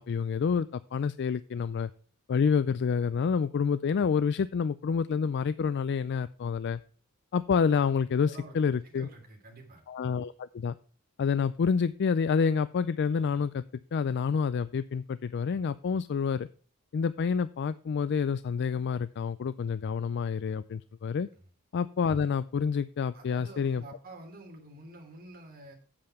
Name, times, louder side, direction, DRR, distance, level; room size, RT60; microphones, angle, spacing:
voice 1, 0.0-1.9 2.3-6.8 7.3-9.1 9.9-10.7 11.2-13.6 13.9-16.5 16.9-21.3 21.7-23.8, left 6 dB, 50° left, 15 dB, 0.4 m, -28 dB
voice 2, 8.2-9.8 21.3-21.5 23.1-25.7, right 2 dB, 45° right, 1 dB, 3.1 m, -49 dB
8.7 x 7.8 x 4.4 m, 0.40 s
head